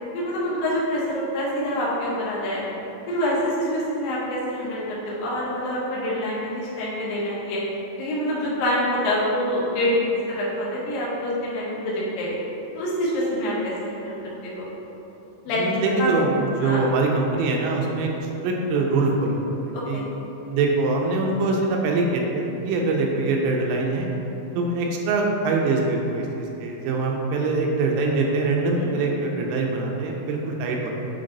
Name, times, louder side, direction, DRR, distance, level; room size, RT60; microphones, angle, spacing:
voice 1, 0.1-2.7 3.1-7.6 8.0-9.9 10.3-12.4 12.7-14.1 14.4-14.7 15.5-15.7 16.0-16.2 16.6-16.9 19.7-20.1 28.7-28.9, equal, 80° left, -6 dB, 2.0 m, -26 dB
voice 2, 15.6-20.0 20.5-24.1 24.6-31.0, right 3 dB, 85° right, 0 dB, 3.3 m, -23 dB
7.5 x 3.9 x 3.9 m, 3.0 s
omnidirectional pair, 5.8 m